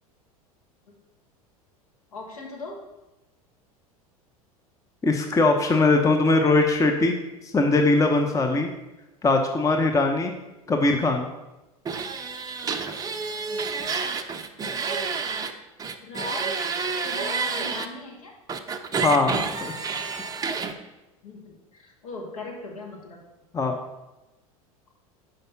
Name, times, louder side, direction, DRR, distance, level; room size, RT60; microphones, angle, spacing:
voice 1, 2.1-2.8 10.7-10.8 13.5-13.6 16.0-16.7 17.0-18.3 21.2-23.2, left 2 dB, 70° left, -1 dB, 1.8 m, -39 dB
voice 2, 5.0-7.1 7.4-8.7 9.2-10.3 10.7-11.3 19.0-19.7 23.5-23.8, left 3 dB, 15° left, 4 dB, 0.7 m, -21 dB
sound 1, 11.9-15.5 15.8-17.9 18.5-20.7, right 5 dB, 20° right, 0.6 m, -29 dB
5.3 x 4.9 x 5.7 m, 1.0 s
figure-of-eight pair, 80°, 19 cm